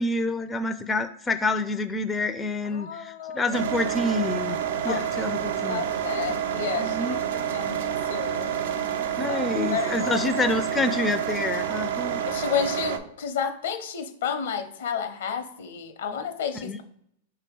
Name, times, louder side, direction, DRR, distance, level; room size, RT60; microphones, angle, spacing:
voice 1, 0.0-4.6 4.8-5.8 6.8-7.2 9.2-12.2 16.6-16.8, left 2 dB, 15° left, 8 dB, 0.3 m, -27 dB
voice 2, 2.6-3.5 4.9-5.3 5.6-8.5 9.3-9.4 9.7-10.2 12.2-16.8, left 8 dB, 75° left, 8 dB, 0.7 m, -31 dB
sound 1, 3.5-13.0, right 9 dB, 75° right, 0.5 m, -28 dB
4.7 x 2.8 x 3.6 m, 0.73 s
hypercardioid pair, 115°, 0 cm